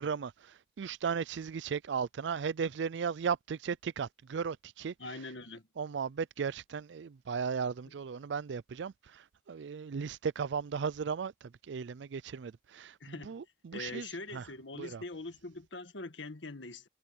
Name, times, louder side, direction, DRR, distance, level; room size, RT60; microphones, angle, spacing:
voice 1, 0.0-5.2 5.8-14.5 14.7-15.0, right 6 dB, 75° right, 0.4 m, -36 dB
voice 2, 5.0-5.6 13.0-13.4 13.7-16.9, left 2 dB, 85° left, 1.8 m, -43 dB
head